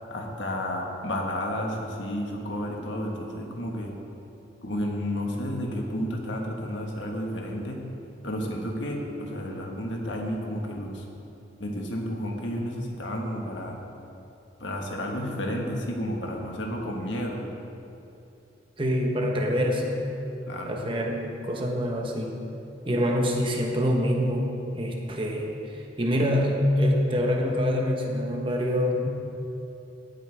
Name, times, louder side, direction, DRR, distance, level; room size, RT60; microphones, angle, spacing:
voice 1, 0.1-3.9 4.6-7.8 8.2-11.0 11.6-13.8 14.6-17.4 20.5-20.8, equal, 90° left, 0 dB, 1.6 m, -31 dB
voice 2, 18.8-20.0 20.6-22.4 22.9-29.1, equal, 30° right, 0 dB, 1.1 m, -25 dB
16.5 x 8.4 x 3.5 m, 2.8 s
head